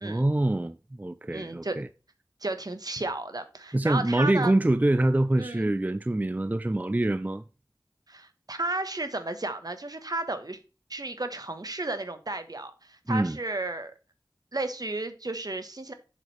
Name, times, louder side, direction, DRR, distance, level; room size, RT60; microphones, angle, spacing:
voice 1, 0.0-1.9 3.7-7.4 13.1-13.4, right 1 dB, 20° right, 0.4 m, -25 dB
voice 2, 1.3-1.8 2.4-4.5 5.4-5.7 8.1-10.6 10.9-13.9 14.5-15.9, right 2 dB, 60° right, 1.2 m, -33 dB
7.7 x 7.5 x 3.3 m
wide cardioid pair, 50°, 8 cm